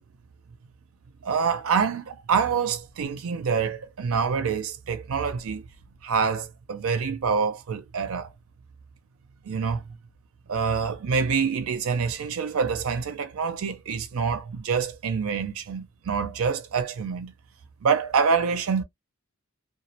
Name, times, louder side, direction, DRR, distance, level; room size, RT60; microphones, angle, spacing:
voice 1, 1.2-5.6 6.0-8.3 9.5-10.0 10.5-17.3 17.8-18.8, right 6 dB, 80° right, 0.5 m, -26 dB
2.2 x 2.1 x 2.7 m
head